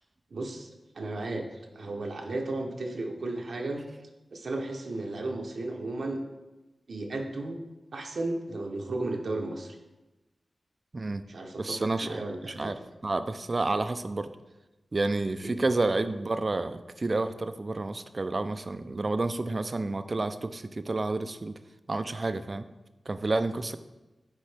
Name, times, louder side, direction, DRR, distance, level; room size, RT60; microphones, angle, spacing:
voice 1, 0.3-0.7 0.9-1.5 1.7-3.8 4.3-6.2 6.9-7.6 7.9-9.8 11.3-12.7 15.4-15.6, right 2 dB, 75° right, 2 dB, 0.7 m, -34 dB
voice 2, 10.9-11.2 11.6-12.8 13.0-14.3 14.9-21.5 21.9-22.7 23.1-23.8, right 2 dB, 40° right, 11 dB, 0.3 m, -30 dB
9.5 x 3.7 x 3.3 m, 1.1 s
wide cardioid pair, 95°, 0 cm